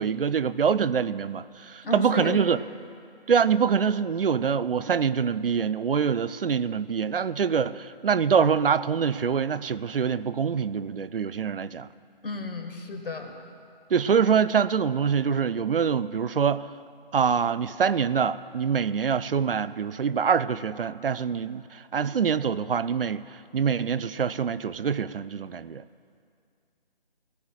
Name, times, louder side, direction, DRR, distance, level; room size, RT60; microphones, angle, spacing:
voice 1, 0.0-2.6 3.3-11.9 13.9-16.7 17.1-23.2 23.5-25.8, right 6 dB, 70° right, 15 dB, 0.5 m, -25 dB
voice 2, 1.8-2.4 12.2-13.3, left 2 dB, 65° left, 4 dB, 1.8 m, -32 dB
19.0 x 15.5 x 2.4 m, 2.3 s
figure-of-eight pair, 165°, 29 cm